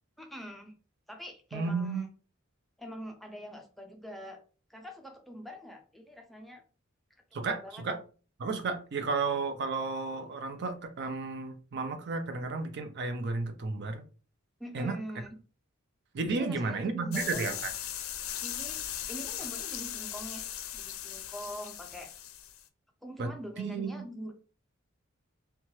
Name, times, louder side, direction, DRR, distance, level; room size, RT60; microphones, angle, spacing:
voice 1, 0.2-0.7 1.1-2.1 2.8-4.4 4.7-6.6 7.4-7.8 14.6-15.4 16.3-17.5 18.4-18.8 19.1-20.5 20.7-22.1 23.0-24.3, equal, ahead, 0.4 m, -44 dB
voice 2, 1.5-2.0 7.3-8.0 8.4-14.0 14.7-15.0 16.1-17.7 23.2-23.3 23.6-23.9, right 4 dB, 55° right, 0.5 m, -33 dB
sound 1, 17.1-22.7, left 10 dB, 85° left, 0.4 m, -38 dB
3.0 x 2.3 x 2.7 m
head